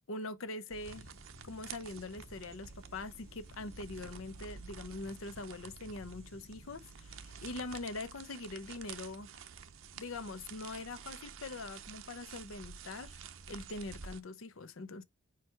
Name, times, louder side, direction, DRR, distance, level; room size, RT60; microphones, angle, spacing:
voice 1, 0.1-1.1 1.4-9.4 9.9-13.2 13.5-15.0, left 2 dB, 70° left, 0.7 m, -43 dB
sound 1, 0.7-14.2, right 6 dB, 65° right, 0.7 m, -50 dB
sound 2, 0.8-7.8, left 3 dB, 30° left, 0.4 m, -59 dB
4.7 x 4.6 x 4.5 m
head